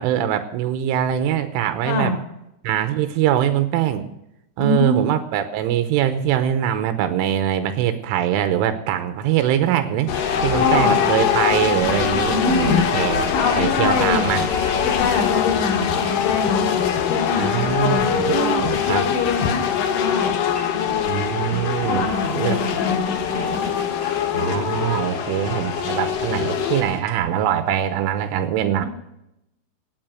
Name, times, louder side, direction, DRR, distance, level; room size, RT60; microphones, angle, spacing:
voice 1, 0.0-2.1 2.6-4.1 4.6-10.1 10.4-13.3 13.6-14.5 17.4-19.0 21.0-22.6 24.3-28.9, right 10 dB, 85° right, 9 dB, 3.3 m, -22 dB
voice 2, 1.8-2.2 4.6-5.0 10.5-11.0 12.3-12.8 13.3-14.4 14.8-16.7 17.1-20.3 21.9-23.5, left 4 dB, 70° left, 2 dB, 4.6 m, -24 dB
sound 1, 10.1-26.8, left 8 dB, 85° left, 1.9 m, -23 dB
sound 2, 10.1-27.2, left 2 dB, 35° left, 1.0 m, -36 dB
18.0 x 8.4 x 6.2 m, 0.83 s
omnidirectional pair, 5.7 m